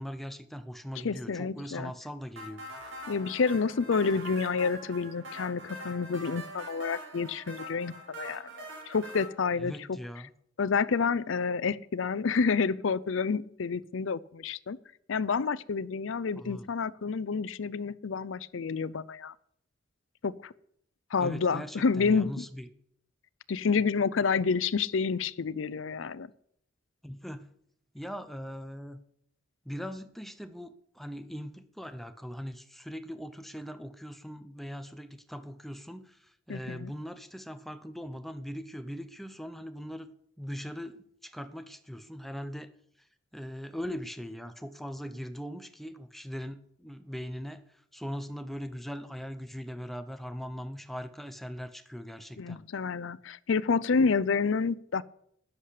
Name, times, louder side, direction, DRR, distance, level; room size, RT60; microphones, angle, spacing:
voice 1, 0.0-2.6 9.6-10.3 16.4-16.7 21.2-22.7 27.0-27.5 27.9-29.0 29.6-36.2 36.5-40.1 40.4-42.7 43.3-47.6 47.9-52.6, equal, ahead, 9 dB, 0.8 m, -40 dB
voice 2, 1.0-1.9 3.1-10.0 10.6-14.8 15.1-19.3 20.2-20.5 21.1-22.4 23.5-26.3 36.5-36.9 52.4-55.0, left 5 dB, 70° left, 18 dB, 0.5 m, -29 dB
sound 1, 2.4-9.3, right 1 dB, 70° right, 4.2 m, -43 dB
11.0 x 10.0 x 6.6 m, 0.69 s
head